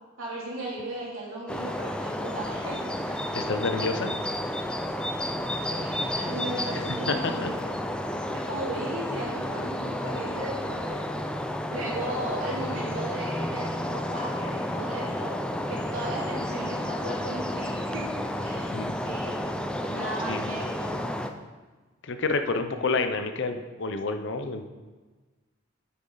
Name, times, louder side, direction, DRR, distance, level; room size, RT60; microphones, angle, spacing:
voice 1, 0.2-3.2 5.7-7.8 8.3-11.0 11.7-15.4 15.7-18.8 19.0-19.5 19.8-21.0, right 1 dB, 80° right, -5 dB, 2.9 m, -36 dB
sound 1, 1.5-21.3, left 1 dB, 5° left, 0.4 m, -31 dB
voice 2, 3.3-4.1 7.1-7.5 18.7-18.9 20.3-20.4 22.0-24.7, left 3 dB, 60° left, 8 dB, 0.7 m, -28 dB
8.9 x 7.2 x 3.9 m, 1.3 s
head